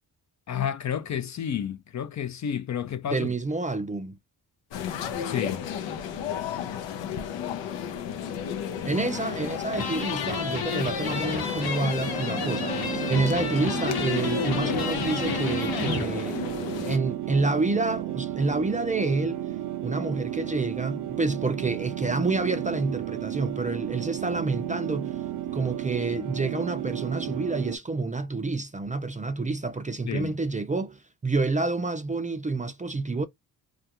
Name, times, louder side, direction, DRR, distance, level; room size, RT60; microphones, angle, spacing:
voice 1, 0.5-3.3 5.2-5.6 30.1-30.3, left 9 dB, 45° left, 0.4 m, -30 dB
voice 2, 3.1-4.2 8.8-16.4 16.9-19.4 19.8-25.2 25.5-33.2, right 3 dB, 20° right, 0.4 m, -28 dB
sound 1, 4.7-17.0, left 8 dB, 85° left, 0.6 m, -33 dB
sound 2, 9.7-16.1, left 5 dB, 60° left, 1.0 m, -32 dB
sound 3, 12.0-27.8, right 13 dB, 75° right, 0.5 m, -33 dB
2.4 x 2.3 x 2.8 m
supercardioid pair, 60°, 43 cm